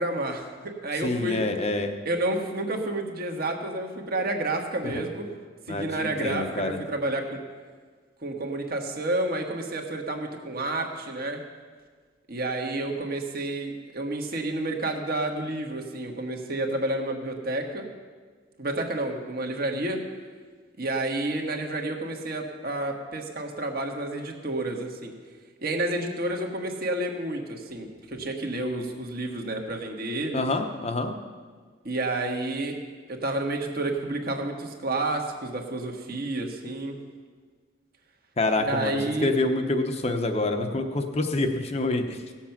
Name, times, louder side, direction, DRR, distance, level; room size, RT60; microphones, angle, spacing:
voice 1, 0.0-1.4 2.0-5.3 5.7-7.4 8.2-11.4 12.3-17.8 18.6-20.0 20.8-25.1 25.6-30.4 31.8-32.8 33.1-37.0 38.6-39.3, right 2 dB, 50° right, 2 dB, 1.5 m, -30 dB
voice 2, 1.0-1.9 4.9-5.0 5.7-6.8 30.3-31.1 38.4-42.2, left 2 dB, 35° left, 5 dB, 0.8 m, -27 dB
17.0 x 7.3 x 5.9 m, 1.5 s
head